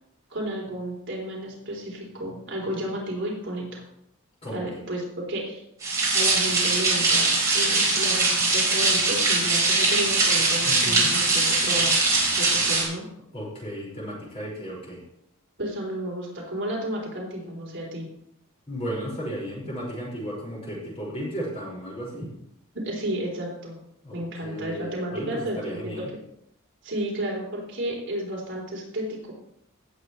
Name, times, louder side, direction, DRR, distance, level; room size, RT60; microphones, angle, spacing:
voice 1, 0.3-3.8 4.5-5.6 6.1-12.1 12.4-13.0 15.6-18.1 22.8-23.8 24.1-26.1 26.8-29.3, right 1 dB, 55° right, -2 dB, 3.6 m, -32 dB
sound 1, 5.8-12.8, right 3 dB, 15° right, 4.5 m, -22 dB
voice 2, 10.6-11.1 13.3-15.0 18.7-22.3 24.0-26.1, equal, 30° left, -5 dB, 5.4 m, -34 dB
17.5 x 7.9 x 3.2 m, 0.76 s
head